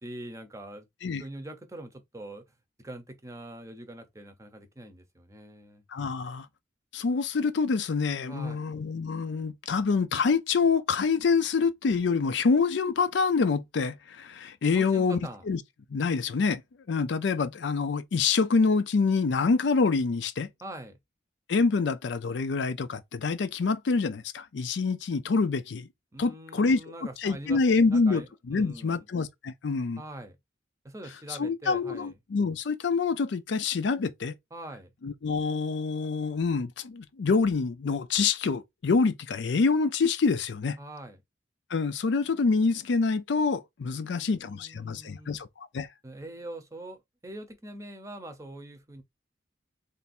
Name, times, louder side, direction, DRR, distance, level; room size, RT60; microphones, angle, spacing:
voice 1, 0.0-0.9 1.2-2.5 2.8-5.8 8.3-8.6 14.7-15.5 20.6-21.0 26.1-29.1 30.0-30.4 30.8-32.2 34.5-34.9 40.8-41.2 43.9-45.4 46.0-47.0 47.2-49.0, right 1 dB, 15° right, 0.7 m, -43 dB
voice 2, 5.9-6.5 6.9-15.2 15.5-15.6 15.9-16.6 16.9-20.5 21.5-25.9 26.2-26.8 27.2-28.2 28.5-30.0 31.4-34.3 35.0-40.8 41.7-45.5 45.7-45.9, left 4 dB, 75° left, 0.4 m, -26 dB
3.3 x 2.6 x 4.1 m
head